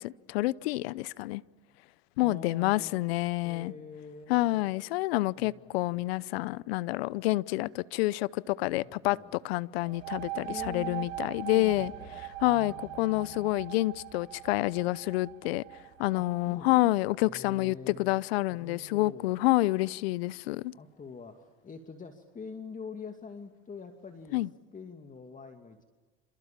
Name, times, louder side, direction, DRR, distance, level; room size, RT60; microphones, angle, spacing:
voice 1, 0.0-1.4 2.2-3.7 4.3-9.2 9.4-11.9 12.4-15.6 16.0-20.7 24.3-24.5, left 19 dB, 80° left, 0.8 m, -28 dB
voice 2, 2.2-3.0 3.4-4.7 5.4-6.1 8.7-9.3 10.5-11.1 11.5-13.5 16.1-16.8 17.2-18.2 18.5-19.4 20.7-24.4 24.7-25.8, left 4 dB, 25° left, 2.6 m, -45 dB
sound 1, 9.8-17.3, right 15 dB, 70° right, 2.6 m, -41 dB
28.0 x 27.5 x 7.5 m
hypercardioid pair, 85°, 31 cm